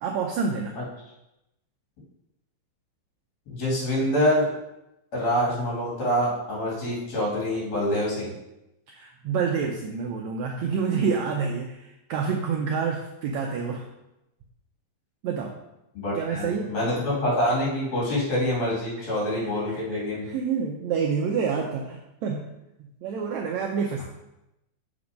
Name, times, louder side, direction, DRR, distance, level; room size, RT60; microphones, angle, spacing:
voice 1, 0.0-0.7 8.9-13.9 15.2-15.5 16.1-16.7 19.0-19.1 19.7-22.5 22.8-24.1, right 6 dB, 80° right, 1 dB, 1.6 m, -28 dB
voice 2, 3.5-4.5 5.1-8.3 16.0-20.3, equal, 50° left, -6 dB, 3.7 m, -26 dB
7.3 x 5.2 x 5.1 m, 0.90 s
omnidirectional pair, 3.9 m